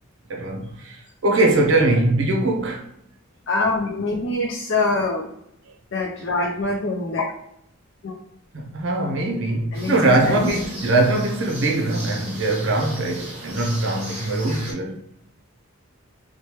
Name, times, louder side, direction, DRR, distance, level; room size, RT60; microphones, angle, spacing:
voice 1, 0.3-2.9 8.5-15.0, right 2 dB, 60° right, 0.6 m, -21 dB
voice 2, 3.5-5.3 5.9-7.3 8.0-8.1 9.7-10.5, left 2 dB, 60° left, 0.4 m, -24 dB
sound 1, 9.7-14.7, right 1 dB, 30° right, 0.9 m, -37 dB
3.1 x 2.1 x 2.9 m
head